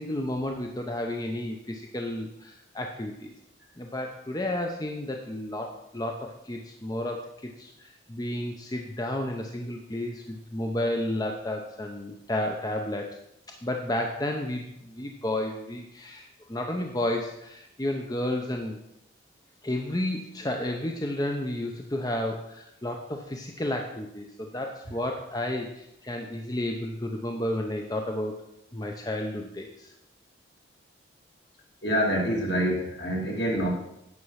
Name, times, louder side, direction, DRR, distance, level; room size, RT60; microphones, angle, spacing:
voice 1, 0.0-3.3 3.8-13.2 13.6-18.8 19.6-28.4 28.7-29.9, left 1 dB, 20° left, 2 dB, 0.7 m, -32 dB
voice 2, 31.8-33.7, equal, 65° left, -1 dB, 2.6 m, -26 dB
9.6 x 5.9 x 5.6 m, 0.80 s
head